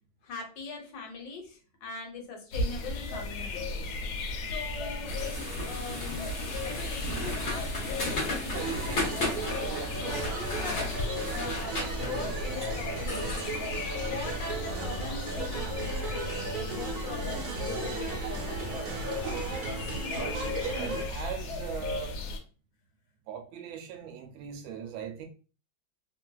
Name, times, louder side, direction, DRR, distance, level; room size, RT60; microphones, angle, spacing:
voice 1, 0.2-4.0 4.5-6.3 6.6-10.9 11.3-13.7 14.0-19.0, left 4 dB, 70° left, 1.4 m, -42 dB
sound 1, 2.5-22.4, left 2 dB, 90° left, 1.4 m, -36 dB
sound 2, 5.1-14.6, left 1 dB, 50° left, 0.7 m, -36 dB
sound 3, 8.5-21.1, right 4 dB, 60° right, 1.2 m, -36 dB
voice 2, 20.8-22.2 23.3-25.3, right 7 dB, 80° right, 1.4 m, -39 dB
3.3 x 2.5 x 2.2 m
omnidirectional pair, 2.2 m